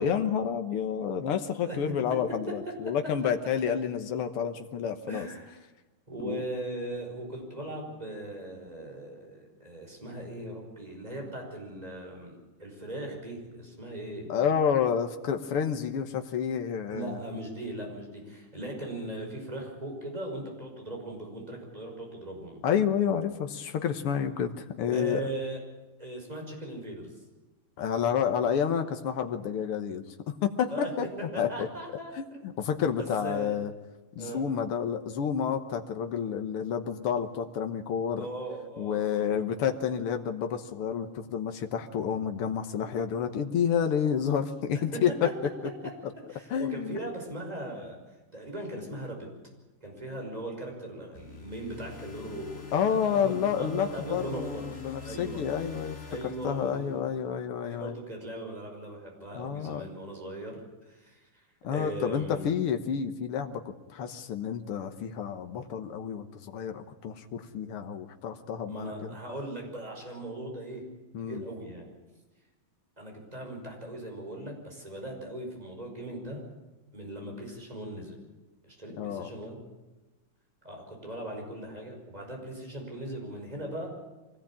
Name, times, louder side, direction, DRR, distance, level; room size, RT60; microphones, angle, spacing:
voice 1, 0.0-5.3 6.2-6.4 14.3-17.2 22.6-25.2 27.8-31.1 31.4-31.7 32.2-33.7 34.2-38.3 38.8-45.3 46.5-47.0 52.7-56.0 56.2-58.0 59.3-59.8 61.6-69.2 71.1-71.4 79.0-79.3, left 8 dB, 85° left, 7 dB, 2.2 m, -29 dB
voice 2, 1.6-2.2 2.7-2.8 5.1-5.6 6.1-14.4 16.9-22.6 24.9-25.6 26.0-27.2 30.7-30.9 31.3-32.5 33.0-33.6 34.2-34.4 38.2-39.4 44.9-45.0 46.3-48.0 48.3-49.3 49.8-54.7 55.0-55.4 56.1-57.0 57.7-60.6 60.9-61.4 61.7-62.5 68.7-70.9 71.2-71.9 73.0-76.4 76.9-78.2 78.6-79.6 80.6-83.9, right 1 dB, 15° right, 1 dB, 5.7 m, -39 dB
sound 1, 51.1-57.3, left 7 dB, 30° left, 2.6 m, -46 dB
24.5 x 18.0 x 8.8 m, 1.1 s
omnidirectional pair, 2.4 m